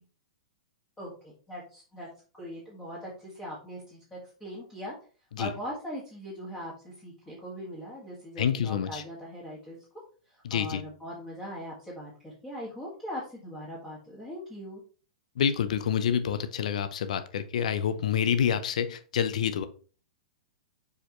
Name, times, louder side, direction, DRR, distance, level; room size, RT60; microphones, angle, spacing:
voice 1, 1.0-2.1 2.3-4.9 5.4-9.8 10.3-14.8, equal, 10° left, -6 dB, 1.9 m, -40 dB
voice 2, 8.4-9.0 10.4-10.8 15.4-19.7, left 8 dB, 75° left, 12 dB, 0.7 m, -27 dB
6.8 x 4.9 x 3.1 m, 0.39 s
hypercardioid pair, 140°, 4 cm